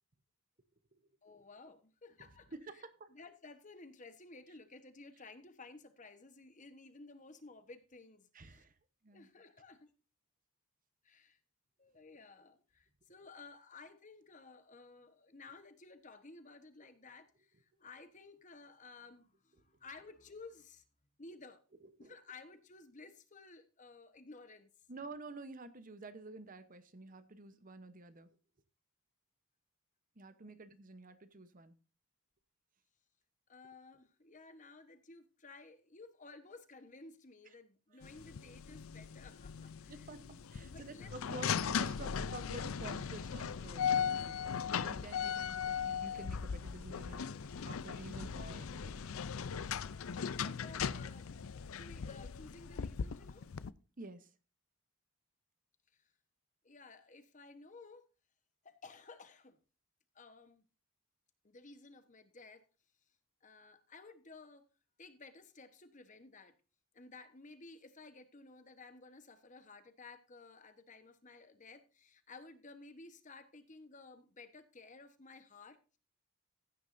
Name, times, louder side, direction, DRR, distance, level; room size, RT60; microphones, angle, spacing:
voice 1, 1.2-2.8 3.1-8.6 9.1-9.9 11.0-11.4 11.8-20.8 21.2-21.6 22.0-24.7 30.5-30.6 33.5-40.1 40.6-41.4 49.8-51.3 51.7-53.5 55.9-56.1 56.6-58.1 58.6-59.6 60.1-60.6 61.4-62.7 63.4-64.7 65.0-66.6 66.9-76.0, left 3 dB, 35° left, 1.1 m, -55 dB
voice 2, 2.5-3.1 8.3-8.8 9.0-9.3 21.8-22.1 24.9-28.3 30.2-31.7 37.9-38.1 39.9-44.4 44.8-47.2 47.7-49.0 54.0-54.3, right 2 dB, 40° right, 0.9 m, -50 dB
sound 1, 38.0-53.7, left 7 dB, 70° left, 0.5 m, -38 dB
15.5 x 9.5 x 2.6 m
head